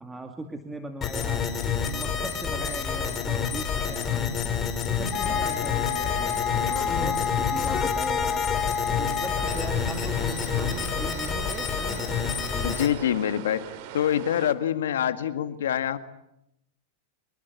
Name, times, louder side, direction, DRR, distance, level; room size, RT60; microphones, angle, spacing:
voice 1, 0.0-4.4 4.9-8.5 9.0-12.1 12.4-12.8, right 2 dB, 10° right, 5 dB, 2.4 m, -39 dB
sound 1, 1.0-12.9, left 6 dB, 25° left, 5.6 m, -28 dB
sound 2, 5.1-9.8, left 7 dB, 40° left, 5.4 m, -29 dB
sound 3, 9.4-14.5, right 11 dB, 55° right, 3.2 m, -41 dB
voice 2, 12.6-13.7 13.9-16.0, left 10 dB, 85° left, 11 dB, 2.0 m, -25 dB
27.0 x 21.0 x 9.7 m, 0.82 s
hypercardioid pair, 130°, 0 cm